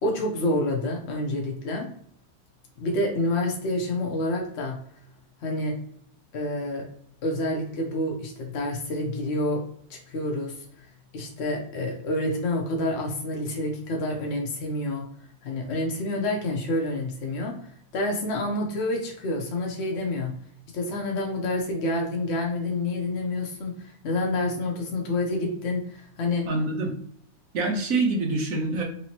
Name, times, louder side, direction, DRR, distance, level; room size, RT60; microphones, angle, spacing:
voice 1, 0.0-1.9 2.8-4.8 5.4-5.8 6.3-6.9 7.2-9.6 9.9-10.6 11.1-15.1 15.4-20.3 20.7-26.5, left 1 dB, 65° left, 0 dB, 0.6 m, -28 dB
voice 2, 26.5-26.9 27.5-28.8, right 3 dB, 60° right, 1 dB, 0.9 m, -25 dB
4.1 x 3.0 x 2.7 m, 0.63 s
omnidirectional pair, 2.0 m